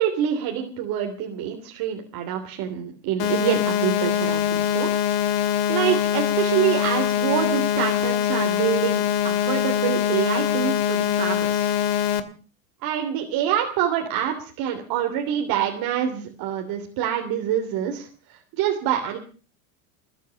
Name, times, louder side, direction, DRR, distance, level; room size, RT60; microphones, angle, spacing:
voice 1, 0.0-4.9 5.3-11.7 12.8-19.2, right 10 dB, 50° right, 3 dB, 3.3 m, -26 dB
sound 1, 3.2-12.2, left 10 dB, 60° left, 2.5 m, -23 dB
21.0 x 9.4 x 7.0 m, 0.40 s
supercardioid pair, 130°, 47 cm